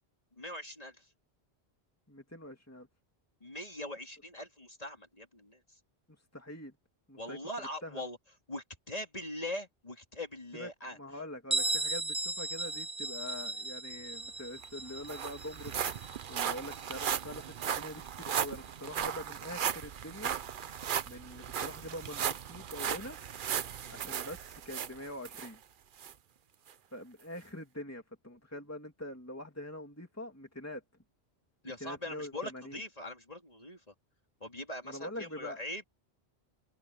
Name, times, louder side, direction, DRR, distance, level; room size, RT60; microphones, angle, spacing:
voice 1, 0.4-1.1 3.4-5.8 7.2-8.2 8.5-11.0 31.6-33.9 34.4-35.8, left 1 dB, 35° left, 3.5 m, -42 dB
voice 2, 2.1-2.9 6.3-6.7 7.1-7.4 7.8-8.0 10.5-10.7 10.9-15.7 16.3-20.3 21.1-23.2 23.9-25.6 26.9-30.8 31.8-32.8 34.8-35.6, left 1 dB, 15° left, 3.0 m, -44 dB
Bell, 11.5-17.0, right 2 dB, 5° right, 1.0 m, -36 dB
sound 1, 14.3-14.4 14.6-25.5 26.0-26.1 26.7-26.8, right 8 dB, 55° right, 0.8 m, -36 dB
omnidirectional pair, 1.1 m